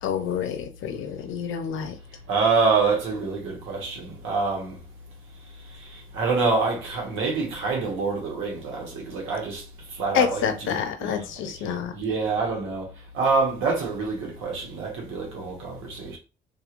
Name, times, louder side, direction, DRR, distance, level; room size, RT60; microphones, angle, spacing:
voice 1, 0.0-2.0 10.1-11.9, left 8 dB, 85° left, 0.6 m, -28 dB
voice 2, 2.3-4.8 5.7-12.9 13.1-16.2, right 4 dB, 90° right, 1.3 m, -26 dB
3.0 x 2.6 x 2.5 m
cardioid pair, 90°, 20 cm